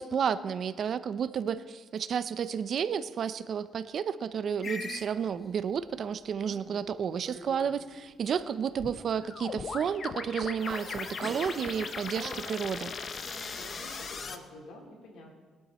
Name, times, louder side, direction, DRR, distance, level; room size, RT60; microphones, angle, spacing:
voice 1, 0.0-12.9, right 7 dB, 50° right, 13 dB, 0.6 m, -31 dB
sound 1, 4.6-5.1 8.8-14.4, left 5 dB, 40° left, 0.9 m, -38 dB
sound 2, 4.8-5.8 6.2-7.0 7.2-8.8 9.3-10.8 11.2-14.3, right 2 dB, 10° right, 2.0 m, -49 dB
voice 2, 6.2-6.6 13.3-15.3, left 2 dB, 70° left, -1 dB, 4.1 m, -49 dB
21.0 x 12.0 x 4.3 m, 1.4 s
cardioid pair, 135°, 0 cm